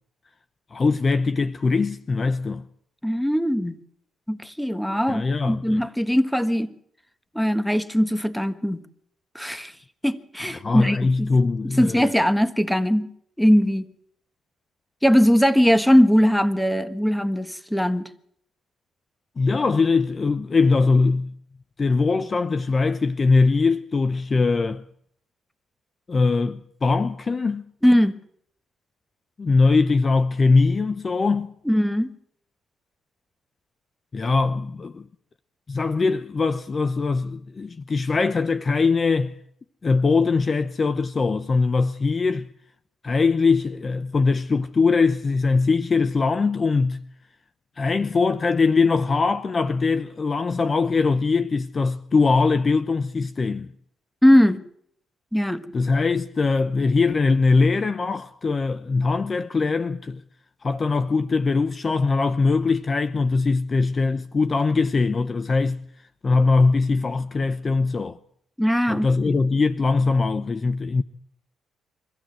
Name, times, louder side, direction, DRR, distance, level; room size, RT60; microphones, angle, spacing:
voice 1, 0.7-2.6 5.1-5.8 10.5-12.1 19.4-21.3 21.8-24.8 26.1-27.6 29.4-31.5 34.1-35.0 35.7-39.4 39.8-42.5 43.0-47.0 47.8-53.7 55.7-60.2 60.6-65.8 66.2-68.2 68.9-71.0, left 4 dB, 35° left, 0.8 m, -21 dB
voice 2, 3.0-3.7 4.3-6.7 7.3-8.8 9.3-9.7 10.0-11.3 11.8-13.1 13.4-13.9 15.0-18.1 27.8-28.1 31.6-32.1 54.2-54.6 55.3-55.6 68.6-69.3, equal, 5° left, 1.4 m, -20 dB
23.5 x 15.0 x 7.6 m
cardioid pair, 90°, 0 cm